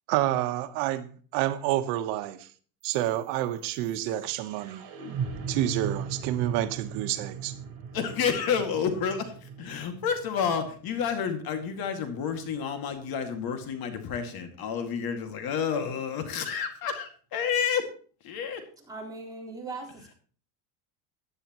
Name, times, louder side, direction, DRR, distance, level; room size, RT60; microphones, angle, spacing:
voice 1, 0.1-2.5 2.8-4.9 5.5-7.5, right 13 dB, 85° right, 1.2 m, -29 dB
sound 1, 2.8-12.8, right 6 dB, 60° right, 3.3 m, -39 dB
voice 2, 7.9-17.9 18.2-18.6, left 7 dB, 50° left, 2.2 m, -30 dB
voice 3, 18.9-20.1, right 3 dB, 10° right, 4.3 m, -39 dB
15.5 x 10.0 x 3.0 m
cardioid pair, 135°, 45 cm